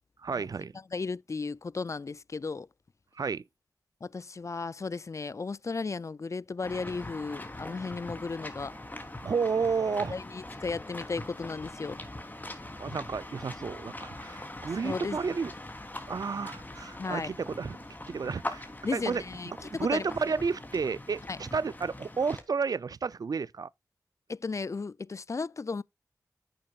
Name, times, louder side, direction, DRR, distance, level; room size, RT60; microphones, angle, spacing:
voice 1, 0.2-0.7 3.2-3.4 9.2-10.2 12.8-15.5 16.1-19.2 19.6-23.7, right 5 dB, 70° right, 0.5 m, -31 dB
voice 2, 0.9-2.7 4.0-8.8 10.1-12.0 14.8-15.3 17.0-17.3 18.8-20.1 21.3-21.4 24.3-25.8, left 4 dB, 50° left, 0.4 m, -35 dB
sound 1, 6.6-22.4, left 1 dB, 25° left, 3.4 m, -42 dB
10.0 x 8.7 x 2.4 m
cardioid pair, 40°, 7 cm